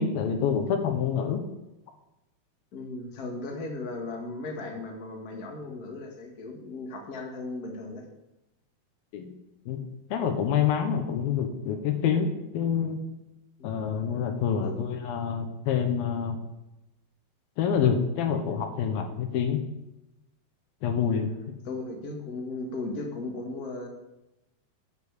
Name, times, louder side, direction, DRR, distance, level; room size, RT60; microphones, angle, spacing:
voice 1, 0.0-1.4 9.1-9.3 9.7-9.8 10.1-13.0 13.6-16.4 17.6-19.6 20.8-21.3, left 7 dB, 75° left, 6 dB, 2.6 m, -27 dB
voice 2, 2.7-8.0 14.6-14.8 21.1-23.9, left 2 dB, 45° left, 1 dB, 1.2 m, -36 dB
8.4 x 7.0 x 8.2 m, 0.96 s
omnidirectional pair, 4.5 m